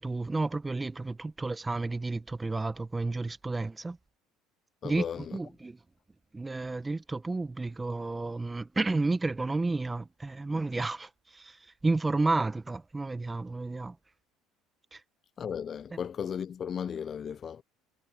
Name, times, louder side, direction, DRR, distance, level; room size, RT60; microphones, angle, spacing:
voice 1, 0.0-4.0 4.8-5.8 6.3-11.6 11.8-13.9 14.9-15.0, right 3 dB, 15° right, 1.1 m, -31 dB
voice 2, 4.8-5.4 15.4-17.6, left 7 dB, 40° left, 0.7 m, -35 dB
supercardioid pair, 80°, 0 cm